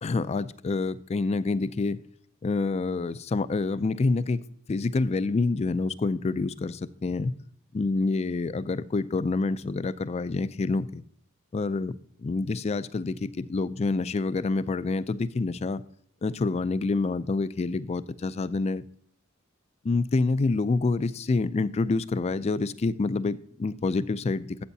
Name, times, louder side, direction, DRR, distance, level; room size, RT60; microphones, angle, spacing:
voice 1, 0.0-2.0 2.4-4.4 4.7-7.3 7.7-11.0 11.5-11.9 12.2-15.8 16.2-18.8 19.8-24.6, left 3 dB, 30° left, 0.3 m, -27 dB
13.0 x 7.9 x 2.7 m
head